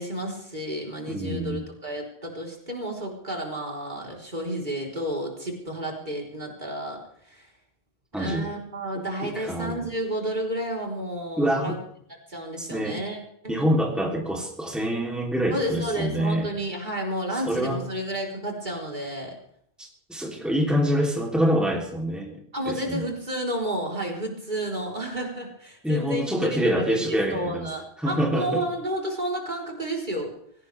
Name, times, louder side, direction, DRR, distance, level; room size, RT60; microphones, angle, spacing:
voice 1, 0.0-7.0 7.2-7.5 8.2-11.8 12.3-13.7 15.5-19.3 22.5-30.3, right 1 dB, 45° right, -1 dB, 4.3 m, -31 dB
voice 2, 1.1-1.6 8.1-8.5 9.2-9.7 11.4-11.8 12.6-13.0 13.5-16.5 17.3-17.8 19.8-23.0 25.8-27.7 28.0-28.6, equal, ahead, -1 dB, 3.2 m, -26 dB
24.5 x 17.0 x 3.5 m, 0.67 s
omnidirectional pair, 1.1 m